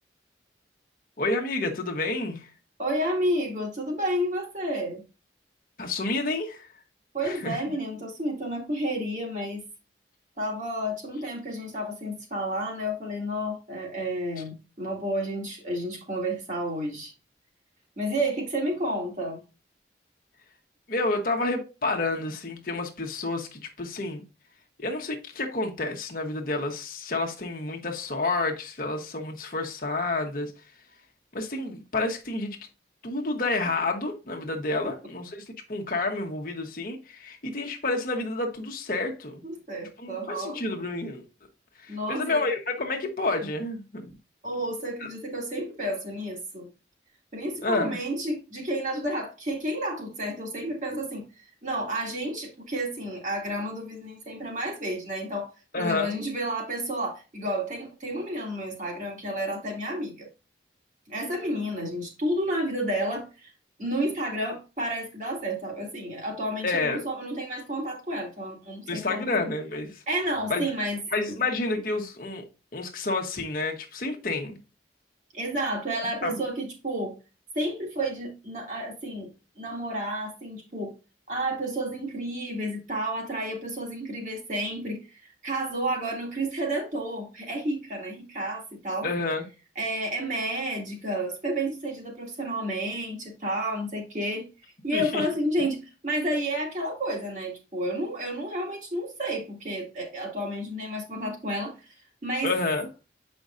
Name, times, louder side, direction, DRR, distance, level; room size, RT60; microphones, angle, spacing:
voice 1, 1.2-2.5 5.8-6.7 7.2-7.6 20.9-24.2 24.8-30.5 31.3-32.6 33.0-35.4 35.7-39.4 40.0-41.2 41.8-44.1 45.0-45.1 47.6-48.0 55.7-56.2 66.6-67.0 68.9-70.0 70.5-70.7 71.1-72.5 72.7-74.6 76.2-76.4 89.0-89.4 94.9-95.2 102.4-102.9, left 3 dB, 50° left, 1.1 m, -29 dB
voice 2, 2.8-5.0 7.1-9.6 10.4-17.1 18.0-19.4 39.4-40.6 41.9-42.5 44.4-46.7 47.3-60.3 61.1-63.5 63.8-69.4 70.1-71.0 75.3-77.2 77.5-79.3 79.6-80.9 81.3-89.1 89.8-94.5 94.8-101.9 102.2-102.5, right 1 dB, 40° right, 2.2 m, -31 dB
7.8 x 5.2 x 2.5 m
head